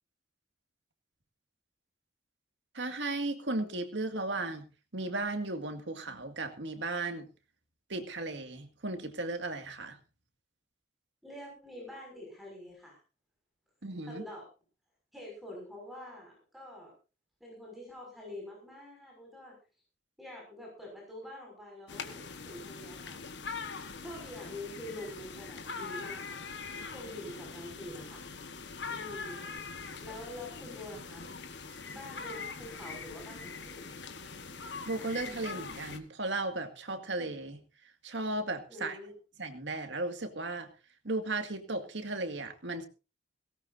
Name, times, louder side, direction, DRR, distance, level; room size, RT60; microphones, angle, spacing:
voice 1, 2.7-4.7 4.9-7.3 7.9-10.0 13.8-14.3 34.9-37.6 38.0-39.0 39.4-40.7 41.0-42.9, right 2 dB, 80° right, 7 dB, 2.0 m, -35 dB
voice 2, 11.2-13.0 14.0-14.5 15.1-16.9 17.4-19.5 20.2-23.6 23.9-26.4 26.7-28.3 28.9-29.5 30.0-31.3 31.8-33.9 38.7-39.1, left 1 dB, ahead, -2 dB, 5.9 m, -46 dB
sound 1, 21.9-36.0, left 4 dB, 75° left, 1.4 m, -42 dB
18.0 x 17.5 x 2.7 m, 0.32 s
head